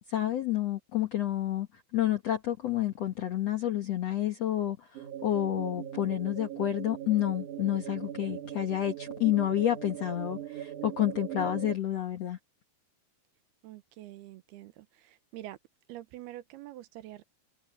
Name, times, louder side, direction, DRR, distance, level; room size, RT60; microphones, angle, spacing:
voice 1, 0.1-1.7 1.9-4.9 5.2-12.4, left 12 dB, 70° left, 1.5 m, -29 dB
sound 1, 5.0-11.8, right 11 dB, 60° right, 2.5 m, -40 dB
voice 2, 13.6-15.6 15.9-17.2, right 15 dB, 80° right, 2.8 m, -46 dB
omnidirectional pair, 4.7 m